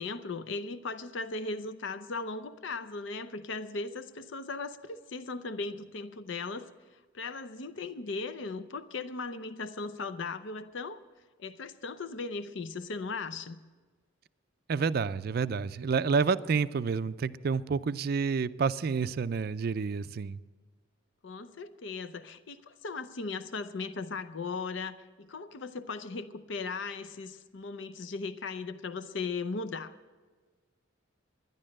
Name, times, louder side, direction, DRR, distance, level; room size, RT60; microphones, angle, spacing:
voice 1, 0.0-6.7 7.1-11.0 11.4-13.6 21.2-30.0, left 4 dB, 65° left, 13 dB, 0.6 m, -37 dB
voice 2, 14.7-20.4, right 5 dB, 50° right, 14 dB, 0.4 m, -29 dB
12.0 x 10.5 x 7.6 m, 1.4 s
head